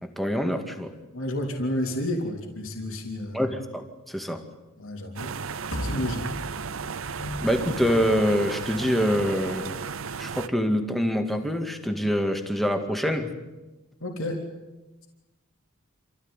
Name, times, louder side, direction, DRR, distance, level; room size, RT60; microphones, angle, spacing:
voice 1, 0.0-1.0 3.3-4.5 7.4-9.8 10.2-13.3, equal, ahead, 5 dB, 2.2 m, -25 dB
voice 2, 1.1-3.4 4.8-5.4 5.7-6.4 14.0-14.4, left 1 dB, 70° left, 1 dB, 3.6 m, -31 dB
sound 1, 5.2-10.5, right 5 dB, 65° right, 0.7 m, -34 dB
sound 2, 5.7-8.2, equal, 85° left, 4.5 m, -36 dB
sound 3, 7.1-9.7, left 1 dB, 25° left, 2.0 m, -41 dB
28.0 x 15.0 x 9.8 m, 1.1 s
head